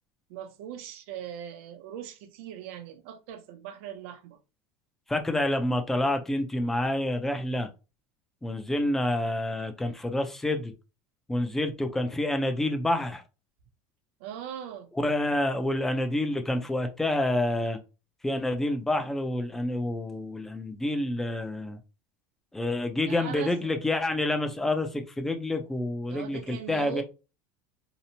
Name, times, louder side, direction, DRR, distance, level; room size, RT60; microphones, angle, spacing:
voice 1, 0.3-4.4 14.2-14.9 23.1-23.8 26.1-27.0, right 9 dB, 70° right, 0.5 m, -40 dB
voice 2, 5.1-7.7 8.4-10.7 11.3-13.2 14.9-17.8 18.2-21.8 22.5-27.0, left 1 dB, 5° left, 0.3 m, -28 dB
2.8 x 2.0 x 2.7 m
cardioid pair, 160°, 7 cm